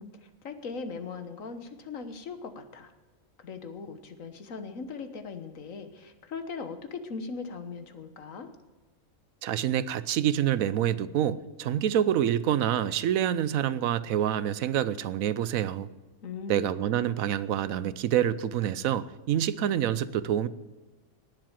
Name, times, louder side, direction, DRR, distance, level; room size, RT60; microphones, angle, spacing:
voice 1, 0.0-2.9 3.4-8.5 16.2-16.6, left 5 dB, 65° left, 9 dB, 1.6 m, -39 dB
voice 2, 9.4-15.9 16.5-20.5, right 10 dB, 75° right, 16 dB, 1.0 m, -27 dB
18.5 x 7.5 x 7.3 m, 1.2 s
omnidirectional pair, 1.5 m